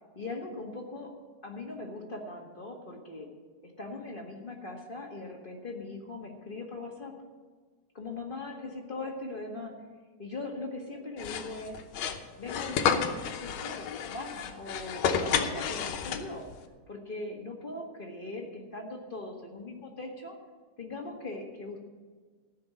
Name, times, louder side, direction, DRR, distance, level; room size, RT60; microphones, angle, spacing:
voice 1, 0.1-1.1 1.4-3.3 3.6-7.2 7.9-9.7 10.2-11.8 12.4-16.5 16.9-20.3 20.8-21.8, left 2 dB, 25° left, 0 dB, 1.1 m, -40 dB
sound 1, 11.2-16.5, left 7 dB, 70° left, 2.1 m, -31 dB
14.0 x 6.7 x 8.9 m, 1.5 s
omnidirectional pair, 3.3 m